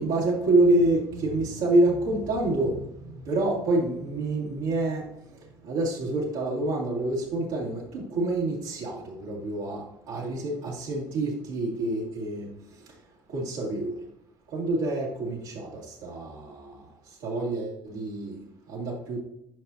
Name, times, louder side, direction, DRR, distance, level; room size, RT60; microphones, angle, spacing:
voice 1, 0.0-13.0 13.3-14.0 14.5-19.2, right 2 dB, 80° right, 2.3 m, -27 dB
9.3 x 5.6 x 2.7 m
hypercardioid pair, 60°, 11 cm